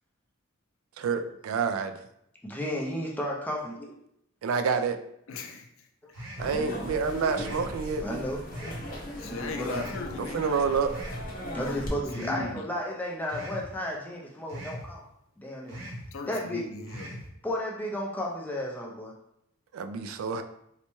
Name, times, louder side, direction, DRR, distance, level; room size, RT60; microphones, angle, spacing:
voice 1, 1.0-1.9 4.4-5.0 6.4-8.3 10.3-10.9 19.7-20.4, right 5 dB, 90° right, 8 dB, 0.3 m, -28 dB
voice 2, 2.4-3.9 8.0-8.4 9.3-9.8 11.5-15.0 15.4-15.8 16.3-16.6 17.4-19.1, equal, 10° left, -2 dB, 0.4 m, -33 dB
voice 3, 5.3-5.7 9.2-10.8 11.6-12.6 16.1-17.2, left 3 dB, 75° left, 4 dB, 0.5 m, -38 dB
sound 1, 6.1-6.6 7.3-7.7 8.5-8.9 9.7-10.1 10.9-11.2 12.1-12.5 13.3-13.7 14.5-14.9 15.7-16.1 16.9-17.3, equal, 65° right, 0.9 m, -40 dB
sound 2, 6.4-11.9, equal, 40° left, 0.7 m, -38 dB
4.0 x 2.2 x 3.0 m, 0.75 s
head